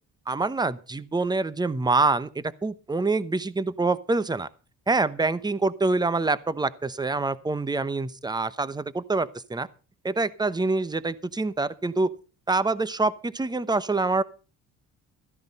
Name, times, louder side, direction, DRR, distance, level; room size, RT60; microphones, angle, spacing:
voice 1, 0.3-4.5 4.9-9.7 10.0-12.1 12.5-14.2, right 3 dB, 15° right, 17 dB, 0.9 m, -26 dB
14.5 x 10.5 x 5.5 m, 0.36 s
cardioid pair, 90°, 30 cm